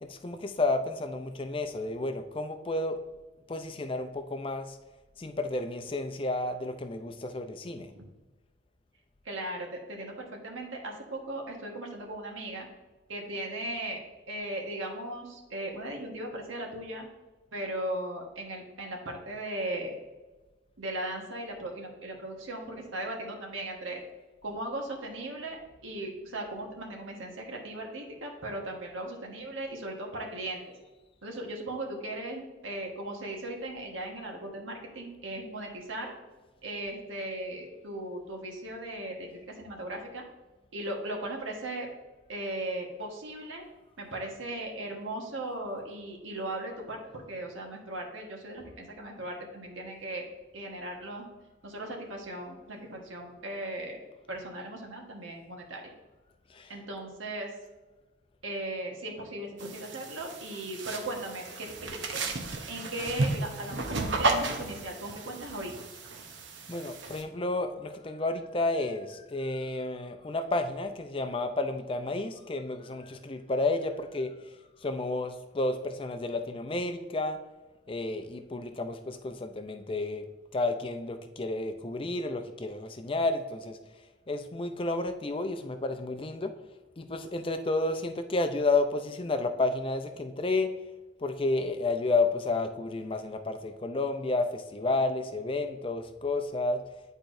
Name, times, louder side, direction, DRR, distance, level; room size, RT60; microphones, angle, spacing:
voice 1, 0.0-3.0 3.5-4.8 5.2-7.9 48.6-48.7 56.5-56.7 66.7-74.3 74.8-77.4 77.9-80.3 80.5-83.8 84.3-86.5 87.0-90.7 91.2-96.8, left 2 dB, 25° left, 8 dB, 0.4 m, -31 dB
voice 2, 9.2-12.7 13.1-14.0 14.3-17.1 17.5-20.0 20.8-24.0 24.4-30.6 31.2-36.1 36.6-40.2 40.7-41.9 42.3-43.7 44.0-50.3 50.5-51.3 51.6-55.9 56.7-57.5 58.4-62.3 62.7-65.7, right 1 dB, 85° right, 1 dB, 1.3 m, -37 dB
sound 1, 59.6-67.2, right 2 dB, 70° right, 0.8 m, -33 dB
10.5 x 4.4 x 2.6 m, 1.2 s
head